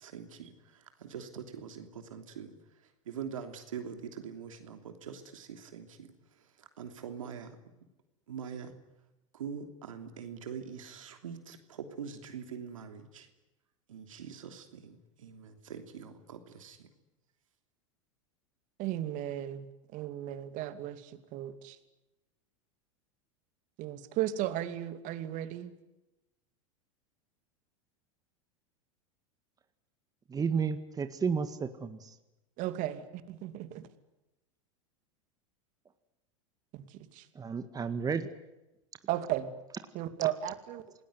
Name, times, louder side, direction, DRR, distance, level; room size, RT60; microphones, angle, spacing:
voice 1, 0.0-7.6 8.3-8.7 9.3-13.3 13.9-16.9, right 7 dB, 80° right, 3.1 m, -44 dB
voice 2, 18.8-19.7 19.9-21.8 23.8-25.7 32.6-33.9 36.7-37.3 39.1-39.5 39.9-40.8, right 12 dB, 50° right, 2.6 m, -35 dB
voice 3, 30.3-32.2 37.3-38.3 39.7-39.8, right 6 dB, 20° right, 1.9 m, -32 dB
28.0 x 19.5 x 9.7 m
hypercardioid pair, 90°, 17 cm